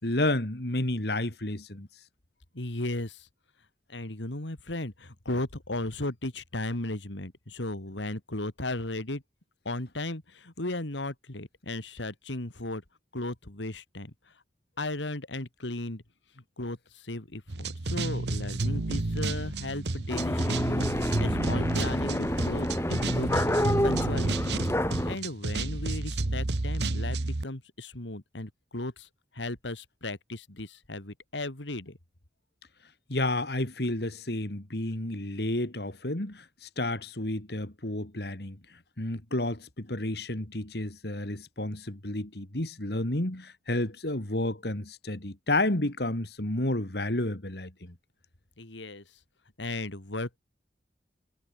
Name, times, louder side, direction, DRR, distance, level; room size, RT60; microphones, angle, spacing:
voice 1, 0.0-1.9 33.1-38.6 39.0-47.9, left 1 dB, 65° left, 2.5 m, -31 dB
voice 2, 2.5-3.3 3.9-9.2 9.6-12.8 13.1-14.1 14.8-16.0 16.6-20.8 21.2-24.6 25.0-29.1 29.3-32.0 48.6-49.0 49.6-50.4, left 2 dB, 90° left, 2.6 m, -36 dB
sound 1, 17.5-27.4, right 2 dB, 70° right, 1.1 m, -31 dB
sound 2, 20.1-25.2, left 1 dB, 15° left, 2.9 m, -28 dB
head